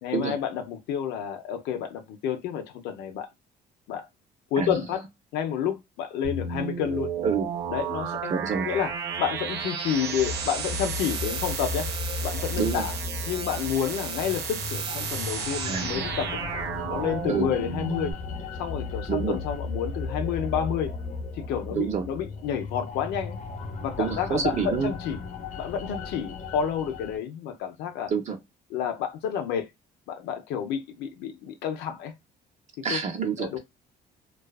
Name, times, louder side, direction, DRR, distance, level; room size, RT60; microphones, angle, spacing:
voice 1, 0.0-3.3 3.9-4.1 4.5-5.0 5.3-7.1 7.7-8.3 8.7-11.9 12.2-12.9 13.3-16.4 16.9-18.1 18.6-20.9 21.3-23.4 23.8-25.2 25.6-28.1 28.7-29.6 30.1-32.1 32.8-33.0 33.4-33.6, left 8 dB, 90° left, 0.6 m, -30 dB
sound 1, 6.2-18.1, right 6 dB, 85° right, 0.6 m, -33 dB
voice 2, 8.3-8.7 12.6-12.9 15.6-16.1 17.3-17.5 19.1-19.4 21.7-22.1 24.0-24.9 28.1-28.4 32.8-33.6, right 6 dB, 45° right, 0.6 m, -27 dB
sound 2, 10.2-27.2, left 4 dB, 45° left, 0.6 m, -36 dB
2.4 x 2.3 x 2.3 m
cardioid pair, 110°, 17 cm